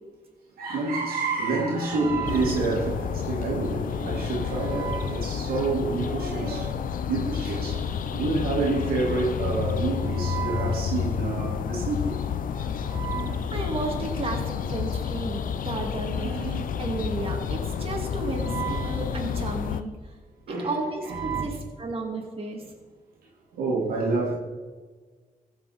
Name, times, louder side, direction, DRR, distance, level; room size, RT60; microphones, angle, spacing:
voice 1, 0.6-6.7 7.1-7.7 8.1-12.1 12.9-13.8 16.1-16.7 18.4-19.0 20.5-20.7 21.1-21.4 23.6-24.4, right 3 dB, 85° right, -3 dB, 2.3 m, -28 dB
sound 1, 2.3-19.8, left 7 dB, 65° left, 0.6 m, -30 dB
voice 2, 13.5-19.9 20.5-22.7, right 2 dB, 40° right, 0 dB, 2.3 m, -33 dB
15.0 x 5.8 x 4.2 m, 1.4 s
cardioid pair, 65°, 15 cm